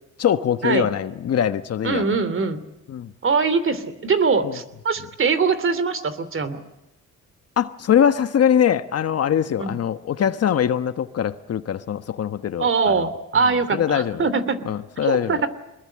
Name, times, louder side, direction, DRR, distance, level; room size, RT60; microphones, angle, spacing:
voice 1, 0.2-2.0 2.9-3.1 4.4-4.6 7.6-13.1 13.4-14.3 14.6-15.5, left 9 dB, 55° left, 1.2 m, -22 dB
voice 2, 1.8-2.6 3.2-6.6 9.6-9.7 12.6-14.6 15.0-15.5, right 5 dB, 45° right, 2.9 m, -22 dB
24.5 x 21.0 x 8.7 m
cardioid pair, 90°, 30 cm